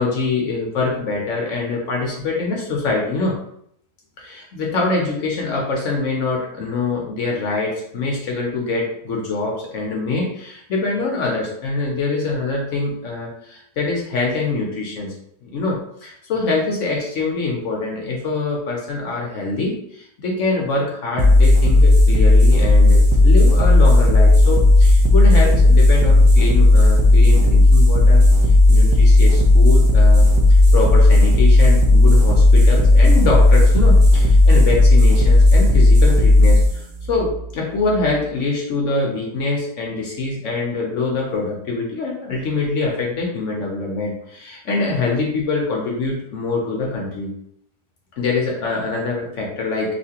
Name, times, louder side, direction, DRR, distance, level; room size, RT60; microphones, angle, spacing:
voice 1, 0.0-3.4 4.2-15.1 15.4-47.3 48.2-49.9, left 3 dB, 65° left, -1 dB, 0.8 m, -24 dB
sound 1, 21.2-38.2, left 2 dB, 85° right, 1.4 m, -12 dB
4.0 x 2.5 x 2.8 m, 0.72 s
omnidirectional pair, 2.0 m